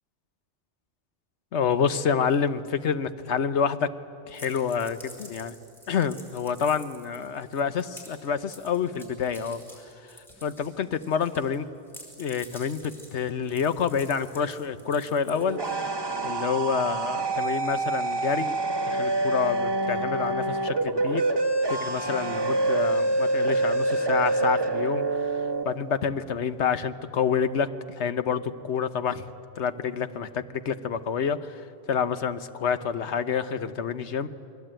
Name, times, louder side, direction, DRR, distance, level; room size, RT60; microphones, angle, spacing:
voice 1, 1.5-3.9 4.3-5.5 5.9-9.6 10.1-11.7 12.2-15.6 16.2-18.5 18.9-21.2 21.7-25.0 25.3-27.7 28.0-29.3 29.6-34.3, left 6 dB, 70° left, 11 dB, 1.3 m, -28 dB
sound 1, 4.3-11.6 11.9-15.8, equal, ahead, 5.7 m, -49 dB
sound 2, 15.2-25.6, right 2 dB, 20° right, 1.2 m, -26 dB
29.0 x 21.5 x 9.0 m, 2.5 s
omnidirectional pair, 1.2 m